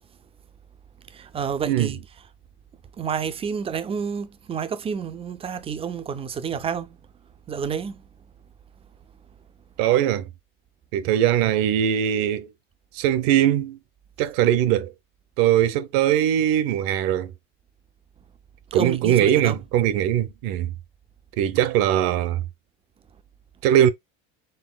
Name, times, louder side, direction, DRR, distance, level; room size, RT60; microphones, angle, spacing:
voice 1, 1.1-2.0 3.0-7.0 7.5-8.0 18.7-19.6, right 6 dB, 15° right, 0.3 m, -29 dB
voice 2, 9.8-10.3 10.9-12.5 12.9-13.8 14.2-14.9 15.4-17.3 18.7-20.7 21.4-22.4 23.6-23.9, right 11 dB, 65° right, 0.8 m, -21 dB
4.3 x 3.7 x 2.2 m
supercardioid pair, 125°, 36 cm